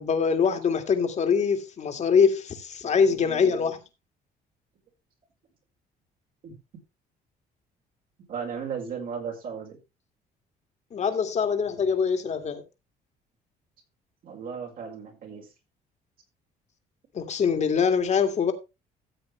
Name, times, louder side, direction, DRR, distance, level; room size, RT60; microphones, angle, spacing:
voice 1, 0.0-3.8 10.9-12.6 17.1-18.5, left 6 dB, 40° left, 2.2 m, -23 dB
voice 2, 2.8-3.7 6.4-6.6 8.3-9.8 14.2-15.5, right 6 dB, 60° right, 5.1 m, -36 dB
14.5 x 7.9 x 3.3 m
cardioid pair, 110°, 17 cm